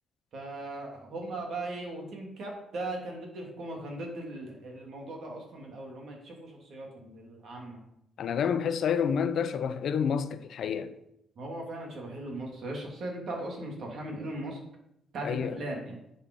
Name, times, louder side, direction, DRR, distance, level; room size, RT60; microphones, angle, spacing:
voice 1, 0.3-7.8 11.4-14.6 15.1-16.0, right 2 dB, 65° right, 3.0 m, -38 dB
voice 2, 8.2-10.9 15.2-15.6, left 7 dB, 65° left, 0.8 m, -29 dB
10.5 x 5.7 x 5.5 m
cardioid pair, 90°, 0 cm